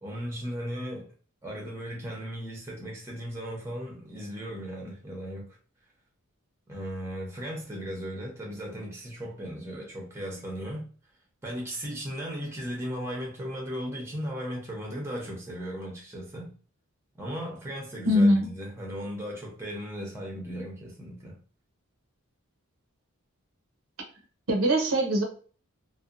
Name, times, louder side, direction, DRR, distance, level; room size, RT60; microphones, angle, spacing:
voice 1, 0.0-1.1 1.4-5.6 6.7-10.9 11.4-16.5 17.1-21.4, equal, 10° right, 0.7 m, -36 dB
voice 2, 18.1-18.5 24.5-25.2, equal, 65° right, 0.7 m, -21 dB
2.7 x 2.2 x 2.5 m
head